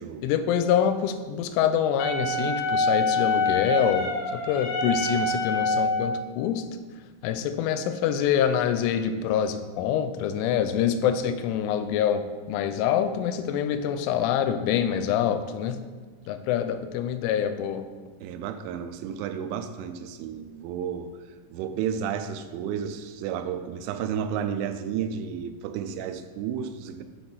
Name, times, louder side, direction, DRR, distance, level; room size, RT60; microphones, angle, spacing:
voice 1, 0.2-6.6 7.2-15.8 16.3-17.9, left 9 dB, 90° left, 10 dB, 3.0 m, -25 dB
Wind instrument woodwind instrument, 2.0-6.2, left 2 dB, 70° left, 2.4 m, -26 dB
voice 2, 18.2-21.1 21.5-27.0, right 8 dB, 90° right, 9 dB, 3.0 m, -32 dB
6.7 x 6.1 x 3.9 m, 1.4 s
omnidirectional pair, 5.4 m